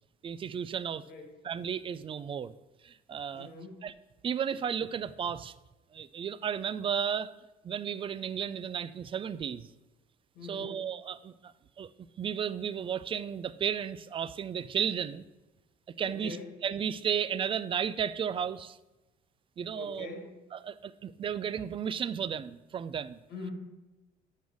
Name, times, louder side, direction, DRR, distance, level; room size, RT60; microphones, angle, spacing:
voice 1, 0.2-1.0 1.4-2.5 2.8-3.5 3.8-3.9 4.2-5.5 5.9-7.3 7.6-9.7 10.5-11.5 11.8-11.9 12.2-15.2 16.0-16.4 16.6-18.8 19.6-20.1 20.5-23.2, right 8 dB, 30° right, 16 dB, 0.4 m, -33 dB
voice 2, 3.3-3.8 10.3-10.8 16.0-16.5 19.7-20.3 23.3-23.5, left 3 dB, 75° left, 3 dB, 1.5 m, -43 dB
6.3 x 5.4 x 6.3 m, 1.1 s
cardioid pair, 110°, 17 cm